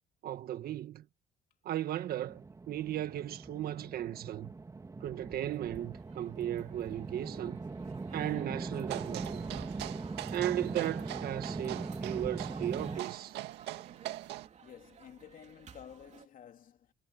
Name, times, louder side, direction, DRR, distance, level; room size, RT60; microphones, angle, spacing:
voice 1, 0.2-1.1 1.6-4.5 5.0-7.6 8.1-9.5 10.3-13.4, right 12 dB, 65° right, 1.6 m, -36 dB
sound 1, 2.3-13.0, right 3 dB, 20° right, 2.4 m, -41 dB
sound 2, 5.5-16.3, right 7 dB, 45° right, 3.4 m, -57 dB
sound 3, 8.9-14.5, right 15 dB, 85° right, 2.0 m, -43 dB
voice 2, 14.3-16.9, left 9 dB, 55° left, 3.2 m, -53 dB
cardioid pair, 110°, 17 cm